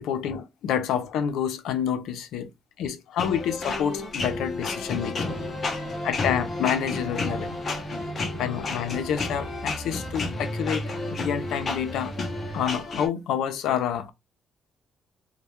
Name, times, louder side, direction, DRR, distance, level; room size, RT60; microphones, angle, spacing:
voice 1, 0.0-2.5 2.8-5.4 6.0-7.6 8.4-12.1 12.5-14.1, left 8 dB, 85° left, 0.4 m, -28 dB
sound 1, 3.2-13.1, left 3 dB, 40° left, 0.6 m, -32 dB
sound 2, 5.2-12.7, right 2 dB, 5° right, 0.6 m, -38 dB
2.2 x 2.1 x 2.9 m
cardioid pair, 140°, 0 cm